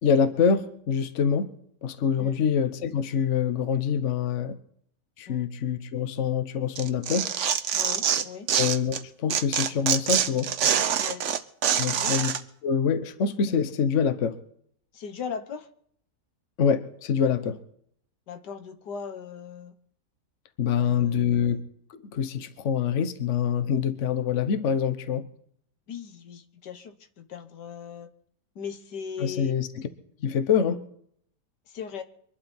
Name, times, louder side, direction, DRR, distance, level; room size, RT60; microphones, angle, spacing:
voice 1, 0.0-1.5 1.8-4.6 5.2-7.3 8.6-10.5 11.8-12.3 12.6-14.4 16.6-17.6 20.6-21.6 21.9-25.3 29.2-29.7 30.2-30.8, left 7 dB, 50° left, 11 dB, 1.2 m, -25 dB
Tearing, 6.7-9.0 9.3-12.4, right 8 dB, 55° right, 1.0 m, -25 dB
voice 2, 7.7-8.5 11.0-11.3 12.0-12.2 14.9-15.7 18.3-19.7 20.8-21.6 25.9-28.1 28.6-29.5 31.7-32.0, left 7 dB, 85° left, 9 dB, 1.8 m, -39 dB
24.0 x 11.5 x 4.3 m, 0.66 s
omnidirectional pair, 1.8 m